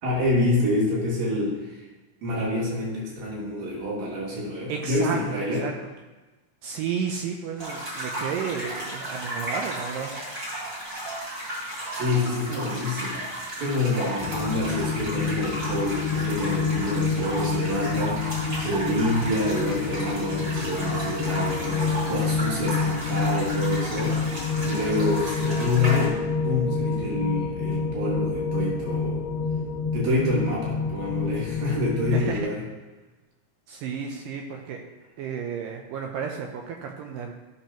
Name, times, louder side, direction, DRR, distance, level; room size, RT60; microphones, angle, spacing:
voice 1, 0.0-1.8 2.2-5.6 11.9-26.2 26.4-29.2 29.9-32.6, left 2 dB, 55° right, -5 dB, 3.4 m, -27 dB
voice 2, 4.7-5.9 6.6-10.1 32.1-32.5 33.7-34.8 35.2-37.3, right 6 dB, 80° right, 2 dB, 2.0 m, -32 dB
sound 1, 7.6-26.1, right 1 dB, 30° right, 2.7 m, -34 dB
sound 2, 14.2-32.4, left 5 dB, 85° left, 2.4 m, -28 dB
14.5 x 6.1 x 3.0 m, 1.2 s
omnidirectional pair, 4.5 m